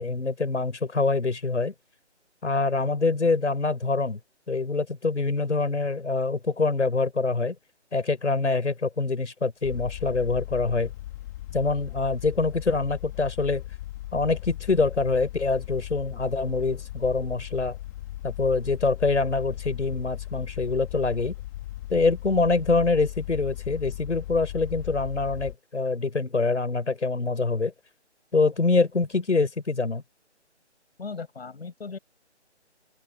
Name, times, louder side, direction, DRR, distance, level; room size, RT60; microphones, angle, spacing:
voice 1, 0.0-1.7 2.4-4.2 4.5-7.5 7.9-10.9 11.5-13.6 14.1-17.8 18.2-21.3 21.9-27.7 28.3-30.0, left 3 dB, 80° left, 6.6 m, -25 dB
sound 1, 9.6-25.5, left 15 dB, 15° left, 2.3 m, -38 dB
voice 2, 31.0-32.0, left 4 dB, 60° left, 6.6 m, -37 dB
open air
figure-of-eight pair, 170°, 35 cm